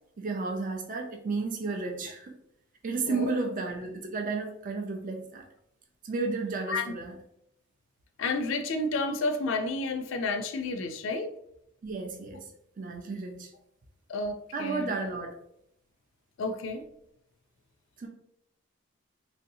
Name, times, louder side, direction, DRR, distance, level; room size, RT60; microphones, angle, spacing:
voice 1, 0.2-2.3 2.8-5.4 6.0-7.2 11.8-12.4 12.8-13.5 14.5-15.3 18.0-18.1, right 3 dB, 40° right, 0.4 m, -32 dB
voice 2, 8.2-11.3 14.1-14.9 16.4-16.8, left 3 dB, 65° left, 0.3 m, -31 dB
3.2 x 2.6 x 2.7 m
head